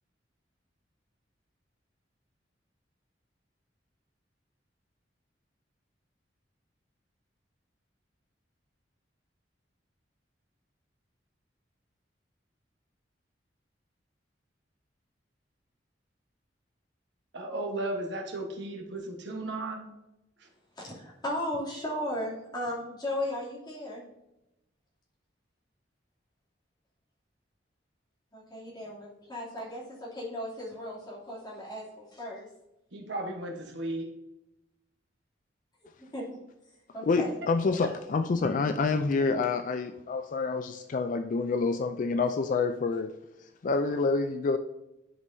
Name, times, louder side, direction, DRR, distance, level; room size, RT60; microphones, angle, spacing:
voice 1, 17.3-19.9 20.4-20.5 32.9-34.1, right 2 dB, 70° right, 2 dB, 1.2 m, -35 dB
voice 2, 20.7-24.1 28.3-32.5 36.0-36.3 36.9-37.4, left 1 dB, 25° left, -7 dB, 2.7 m, -36 dB
voice 3, 37.0-43.2 43.6-44.6, left 4 dB, 45° left, 8 dB, 0.3 m, -27 dB
11.0 x 5.5 x 2.7 m, 0.91 s
head